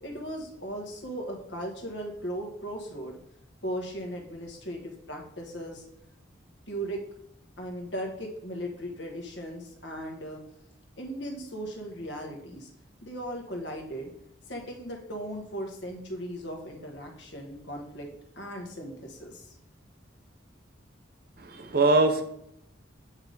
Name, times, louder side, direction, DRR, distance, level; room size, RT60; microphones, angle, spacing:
voice 1, 0.0-3.2 3.6-5.8 6.7-7.0 7.6-10.4 11.0-12.7 13.0-14.1 14.5-18.1 18.3-19.6, equal, 65° left, 1 dB, 1.3 m, -37 dB
voice 2, 21.4-22.2, right 2 dB, 50° right, 7 dB, 0.7 m, -22 dB
8.0 x 3.4 x 3.9 m, 0.76 s
head